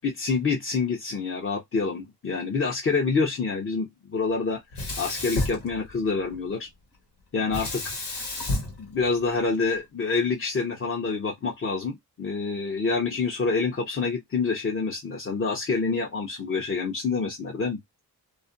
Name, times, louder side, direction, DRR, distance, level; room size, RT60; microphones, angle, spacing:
voice 1, 0.0-6.7 7.3-7.9 8.8-17.8, left 4 dB, 30° left, 0.6 m, -27 dB
Sink (filling or washing), 4.7-6.4 7.5-9.8, left 2 dB, 75° left, 1.1 m, -32 dB
2.4 x 2.1 x 2.5 m
cardioid pair, 50°, 41 cm